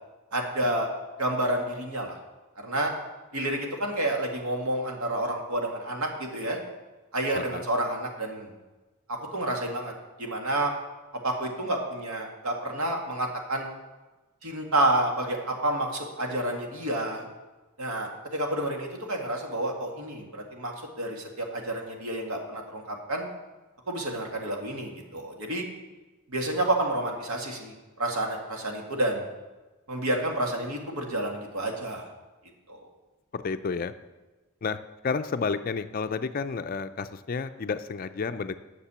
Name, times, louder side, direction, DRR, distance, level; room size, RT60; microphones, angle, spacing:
voice 1, 0.3-0.9 1.2-2.2 2.6-2.9 3.3-6.6 7.1-8.5 9.1-9.9 10.2-10.7 11.2-13.7 14.4-17.3 17.8-23.3 23.9-25.6 26.3-29.2 29.9-32.1 32.7-32.9, right 1 dB, 80° right, 1 dB, 1.9 m, -29 dB
voice 2, 33.3-33.9 34.6-34.8 35.0-38.5, left 5 dB, 40° left, 11 dB, 0.4 m, -31 dB
10.0 x 6.7 x 6.9 m, 1.2 s
head